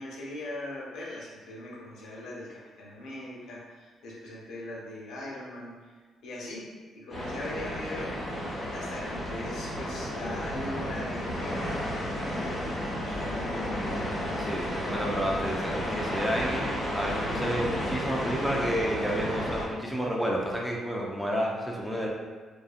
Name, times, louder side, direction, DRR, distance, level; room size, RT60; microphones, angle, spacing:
voice 1, 0.0-5.9 6.2-6.7 6.9-8.1 8.7-13.8 14.8-15.0, left 1 dB, 75° left, -4 dB, 0.7 m, -40 dB
sound 1, 7.1-19.6, equal, 35° left, 1.0 m, -32 dB
voice 2, 14.4-22.1, equal, 5° left, -3 dB, 0.4 m, -31 dB
2.6 x 2.4 x 2.4 m, 1.4 s
cardioid pair, 90°, 0 cm